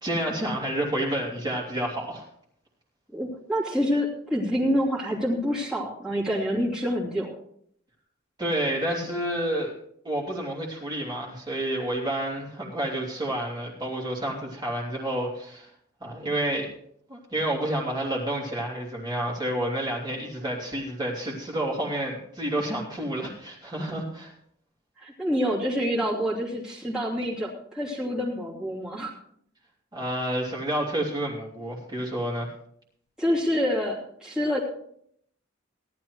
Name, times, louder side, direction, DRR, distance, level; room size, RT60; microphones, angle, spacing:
voice 1, 0.0-2.3 8.4-9.7 10.0-15.7 16.0-16.7 17.1-24.3 29.9-32.5, right 1 dB, 20° right, -4 dB, 3.0 m, -29 dB
voice 2, 3.1-7.3 25.0-29.1 33.2-34.6, equal, 5° right, -7 dB, 2.9 m, -27 dB
18.0 x 11.5 x 3.1 m, 0.67 s
head